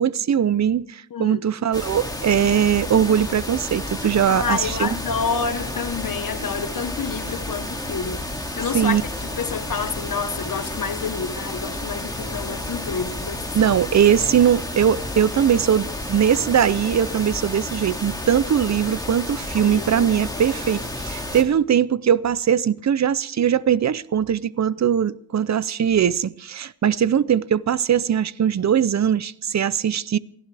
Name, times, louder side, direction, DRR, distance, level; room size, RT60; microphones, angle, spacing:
voice 1, 0.0-5.0 8.7-9.0 13.5-30.2, right 9 dB, 45° right, 0.5 m, -20 dB
sound 1, 1.7-21.4, left 1 dB, 10° left, 2.3 m, -31 dB
voice 2, 4.3-8.2 8.6-13.4 19.6-20.1, left 5 dB, 55° left, 1.3 m, -28 dB
28.5 x 11.5 x 3.4 m
wide cardioid pair, 120°, 41 cm